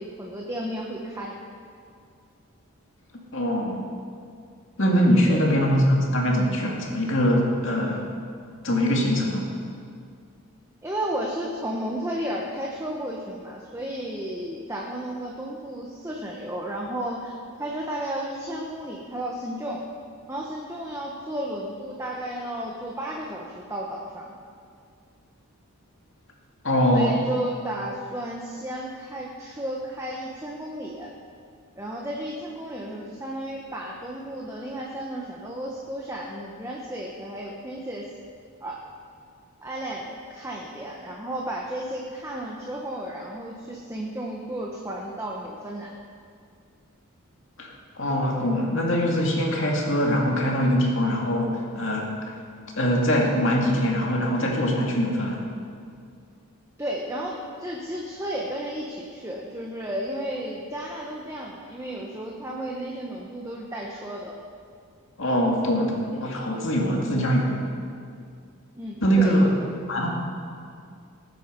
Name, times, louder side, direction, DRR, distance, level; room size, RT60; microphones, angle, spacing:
voice 1, 0.0-1.3 5.2-5.5 10.8-19.8 20.3-24.3 26.9-31.1 31.8-38.1 38.6-38.8 39.6-45.9 56.8-64.4 68.7-69.4, right 1 dB, 15° right, -2 dB, 1.1 m, -33 dB
voice 2, 3.3-3.8 4.8-8.1 8.6-9.4 26.6-27.2 47.6-52.3 52.8-55.5 65.2-67.7 69.0-69.5 69.9-70.1, equal, 55° left, -1 dB, 2.5 m, -23 dB
19.5 x 9.1 x 5.3 m, 2.3 s
head